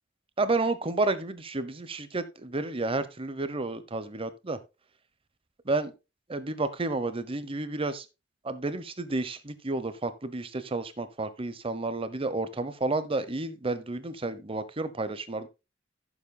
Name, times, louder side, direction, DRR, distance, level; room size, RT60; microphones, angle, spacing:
voice 1, 0.4-4.6 5.7-5.9 6.3-8.0 8.4-15.5, right 2 dB, 30° right, 0.8 m, -31 dB
16.0 x 7.2 x 2.2 m
head